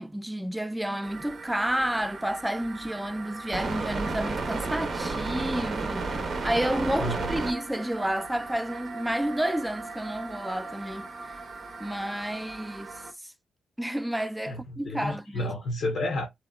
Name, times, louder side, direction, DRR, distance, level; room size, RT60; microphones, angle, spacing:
voice 1, 0.0-11.1 11.8-13.3 13.8-15.5, right 1 dB, 5° right, 0.3 m, -30 dB
sound 1, 1.0-13.1, right 3 dB, 60° right, 0.6 m, -35 dB
voice 2, 7.0-7.3 14.5-16.3, left 1 dB, 80° left, 0.6 m, -31 dB
2.7 x 2.1 x 2.3 m
cardioid pair, 60°, 0 cm